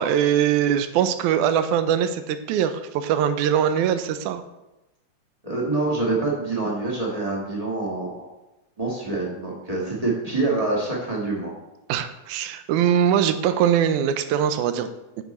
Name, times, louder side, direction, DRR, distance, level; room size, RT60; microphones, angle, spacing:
voice 1, 0.0-4.4 11.9-14.9, right 9 dB, 80° right, 10 dB, 1.9 m, -22 dB
voice 2, 5.4-8.2 8.8-11.5, right 3 dB, 35° right, -3 dB, 0.6 m, -26 dB
9.3 x 6.0 x 4.3 m, 0.96 s
omnidirectional pair, 3.7 m